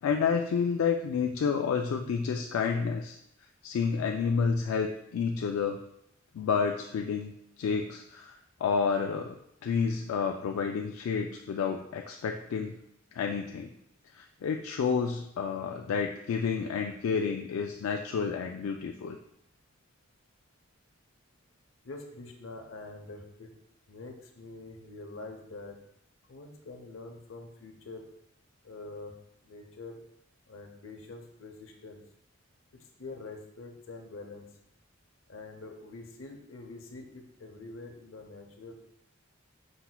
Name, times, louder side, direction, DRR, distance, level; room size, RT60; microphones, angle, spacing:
voice 1, 0.0-3.2 3.6-5.8 6.3-7.3 7.6-8.3 8.6-12.7 13.2-13.7 14.1-19.2, left 6 dB, 90° left, 3 dB, 0.3 m, -30 dB
voice 2, 21.8-23.5 23.9-25.8 26.3-28.1 28.6-29.1 29.4-30.0 30.5-32.0 33.0-34.5 35.3-38.7, left 3 dB, 75° left, 3 dB, 0.8 m, -45 dB
5.5 x 4.0 x 2.2 m, 0.76 s
head